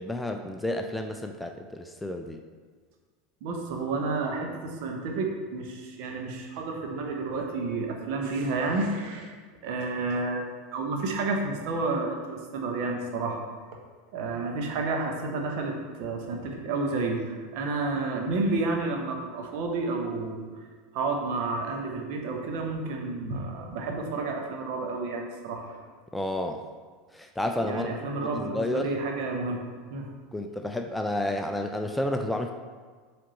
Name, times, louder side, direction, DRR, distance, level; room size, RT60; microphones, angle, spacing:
voice 1, 0.0-2.4 26.1-26.6 27.1-27.9 28.2-29.0 30.3-32.5, left 1 dB, 5° left, 5 dB, 0.4 m, -31 dB
voice 2, 3.4-9.3 9.6-10.5 10.7-13.4 14.1-20.4 20.9-25.8 27.6-29.6 29.9-30.1, right 3 dB, 55° right, 2 dB, 1.0 m, -30 dB
7.3 x 3.4 x 4.3 m, 1.5 s
figure-of-eight pair, 75°, 0 cm